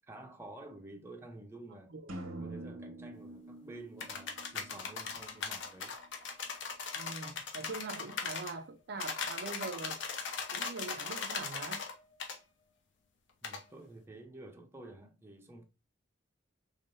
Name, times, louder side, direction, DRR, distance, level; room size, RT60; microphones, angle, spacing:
voice 1, 0.1-2.0 2.4-6.0 13.4-15.7, right 2 dB, 10° right, 0.6 m, -50 dB
sound 1, 2.1-5.9, right 2 dB, 90° right, 0.9 m, -46 dB
sound 2, 4.0-8.5 9.0-11.9 12.2-12.4 13.4-13.6, left 5 dB, 60° left, 0.8 m, -39 dB
voice 2, 7.0-10.0 10.5-11.8, right 3 dB, 55° right, 0.5 m, -43 dB
3.6 x 3.6 x 2.5 m
head